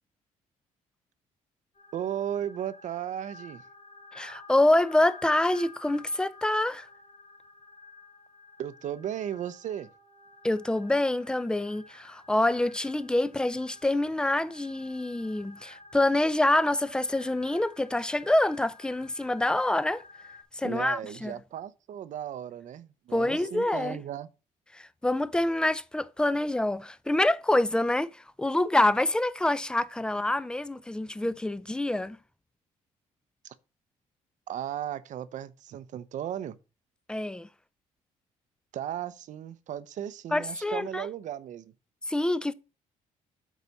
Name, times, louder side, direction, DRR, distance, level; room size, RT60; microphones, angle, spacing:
sound 1, 1.7-20.4, left 3 dB, 60° left, 3.2 m, -52 dB
voice 1, 1.9-3.6 8.6-9.9 20.6-24.3 33.4-33.5 34.5-36.6 38.7-41.7, right 10 dB, 65° right, 0.7 m, -35 dB
voice 2, 4.1-6.9 10.4-20.0 20.5-21.3 23.1-24.0 24.7-32.2 37.1-37.5 40.3-41.1 42.1-42.5, left 1 dB, 5° left, 0.5 m, -26 dB
8.3 x 4.1 x 5.3 m
cardioid pair, 95°, 14 cm